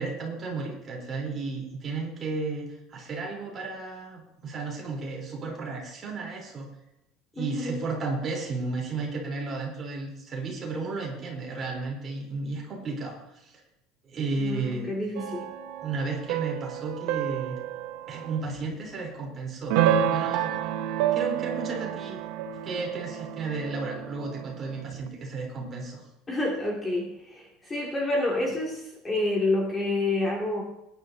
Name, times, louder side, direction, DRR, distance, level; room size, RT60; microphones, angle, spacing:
voice 1, 0.0-6.7 7.3-13.6 14.0-14.9 15.8-17.6 18.1-19.8 20.1-20.5 21.1-22.2 22.6-26.1, right 3 dB, 25° right, -1 dB, 3.6 m, -33 dB
voice 2, 7.4-7.8 14.4-15.5 26.3-30.6, left 2 dB, 15° left, -2 dB, 2.3 m, -28 dB
sound 1, 15.2-18.6 19.7-25.1, right 10 dB, 70° right, 0.7 m, -29 dB
20.0 x 11.0 x 2.7 m, 0.85 s
cardioid pair, 165°, 0 cm